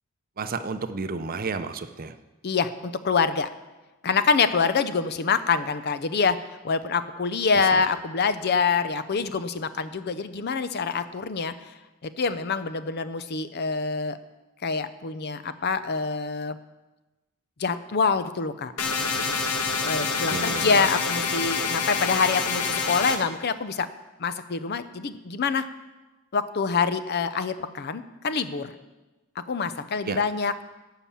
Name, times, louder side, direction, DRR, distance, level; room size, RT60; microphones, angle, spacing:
voice 1, 0.4-2.2 7.7-7.8 20.3-20.9 30.0-30.2, right 4 dB, 40° right, 10 dB, 0.6 m, -32 dB
voice 2, 2.4-3.5 4.0-11.7 12.0-14.2 14.6-16.6 17.6-18.7 19.8-23.9 24.2-25.6 26.3-28.7 29.4-30.5, left 5 dB, 45° left, 12 dB, 0.6 m, -26 dB
sound 1, 18.8-23.2, left 4 dB, 90° left, 1.3 m, -27 dB
13.0 x 5.8 x 8.5 m, 1.1 s
head